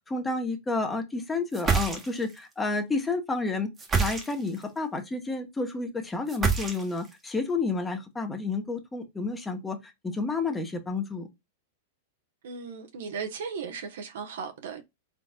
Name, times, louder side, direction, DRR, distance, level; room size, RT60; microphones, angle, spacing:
voice 1, 0.1-3.7 4.0-11.3, left 3 dB, 10° left, 1.2 m, -30 dB
sound 1, 1.5-2.4 3.8-4.6 6.3-7.1, right 5 dB, 20° right, 1.2 m, -27 dB
voice 2, 12.4-14.8, right 6 dB, 75° right, 1.1 m, -36 dB
4.2 x 3.9 x 2.4 m
hypercardioid pair, 125°, 0 cm